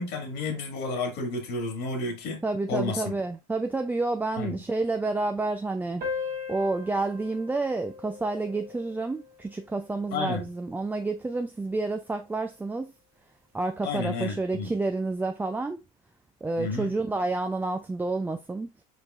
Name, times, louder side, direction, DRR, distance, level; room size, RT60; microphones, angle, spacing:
voice 1, 0.0-3.1 4.4-4.6 10.1-10.4 13.8-14.7 16.6-16.9, left 3 dB, 60° left, 1.9 m, -31 dB
voice 2, 2.4-6.0 6.5-12.9 13.5-15.8 16.4-18.7, right 3 dB, 10° right, 0.4 m, -29 dB
sound 1, 6.0-11.0, left 5 dB, 50° right, 1.9 m, -39 dB
5.0 x 4.3 x 2.3 m
supercardioid pair, 95°, 20 cm